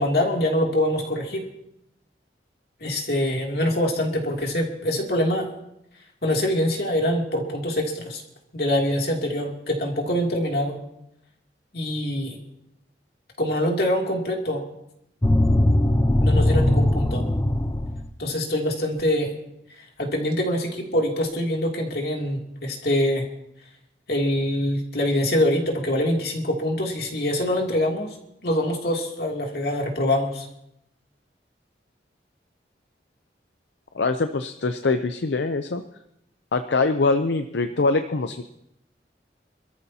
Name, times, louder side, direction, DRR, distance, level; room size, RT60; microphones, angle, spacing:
voice 1, 0.0-1.4 2.8-5.5 6.2-8.2 8.5-10.8 11.7-12.4 13.4-14.6 16.2-17.2 18.2-19.3 19.8-23.2 24.1-28.1 28.4-30.5, left 1 dB, 60° left, 0 dB, 2.8 m, -24 dB
sound 1, 15.2-18.1, left 1 dB, 15° left, 0.7 m, -20 dB
voice 2, 33.9-35.8 36.5-38.4, left 3 dB, 80° left, 8 dB, 0.6 m, -23 dB
27.0 x 13.5 x 2.8 m, 0.80 s
head